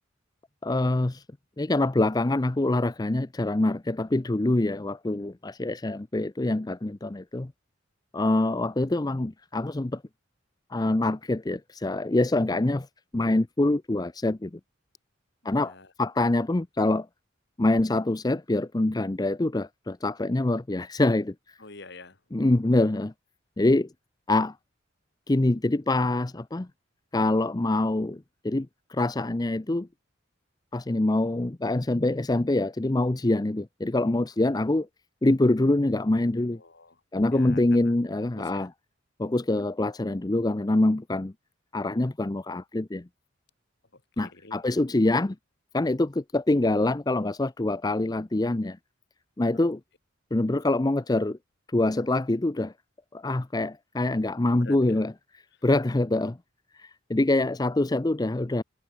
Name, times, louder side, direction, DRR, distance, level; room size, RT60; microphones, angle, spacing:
voice 1, 0.6-1.2 1.6-7.5 8.1-10.0 10.7-12.9 13.1-14.5 15.4-17.1 17.6-21.3 22.3-23.1 23.6-23.9 24.3-24.5 25.3-26.7 27.1-29.9 30.7-34.9 35.2-36.6 37.1-38.7 39.2-41.3 41.7-43.1 44.2-45.4 45.7-48.8 49.4-49.8 50.3-51.4 51.7-52.7 53.1-55.1 55.6-56.4 56.8-58.6, left 2 dB, 20° left, 0.5 m, -25 dB
voice 2, 15.5-15.9 21.6-22.2 36.5-37.0 37.3-37.9 38.2-38.7 43.9-44.6 49.5-49.7 54.6-55.0, left 3 dB, 60° left, 3.0 m, -47 dB
head